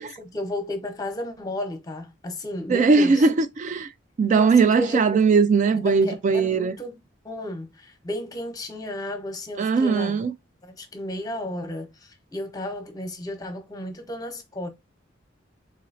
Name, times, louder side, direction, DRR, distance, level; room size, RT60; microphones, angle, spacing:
voice 1, 0.0-3.3 4.3-5.0 5.7-7.0 7.2-10.2 10.6-14.7, left 1 dB, 20° left, 0.9 m, -33 dB
voice 2, 2.7-3.9 4.2-6.7 9.6-10.3, right 4 dB, 40° right, 0.3 m, -19 dB
3.9 x 3.0 x 2.6 m
head